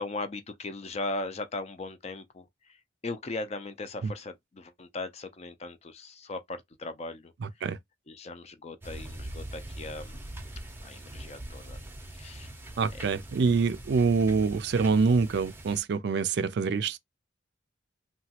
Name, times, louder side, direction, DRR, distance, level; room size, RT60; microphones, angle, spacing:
voice 1, 0.0-2.4 3.0-7.3 8.1-10.2 10.8-11.8 12.1-12.5, left 2 dB, 35° left, 0.4 m, -38 dB
voice 2, 7.4-7.8 12.8-17.0, right 4 dB, 65° right, 0.4 m, -25 dB
sound 1, 8.8-15.8, right 1 dB, 10° right, 0.6 m, -42 dB
2.9 x 2.3 x 2.8 m
head